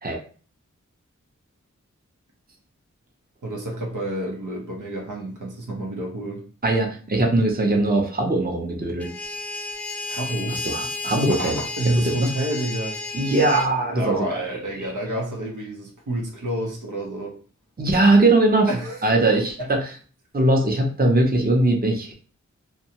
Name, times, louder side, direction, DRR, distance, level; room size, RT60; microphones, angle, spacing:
voice 1, 3.4-6.4 10.1-10.6 11.3-13.0 13.9-17.3 18.7-19.0, right 1 dB, 90° right, -1 dB, 0.8 m, -29 dB
voice 2, 6.6-9.3 10.5-11.6 12.2-12.3 13.1-14.6 17.8-18.7 19.0-19.8 20.3-22.1, right 2 dB, 30° right, 1 dB, 0.7 m, -20 dB
sound 1, 9.0-13.7, left 3 dB, 5° left, 0.4 m, -32 dB
2.6 x 2.2 x 2.9 m, 0.41 s
wide cardioid pair, 40°, 30 cm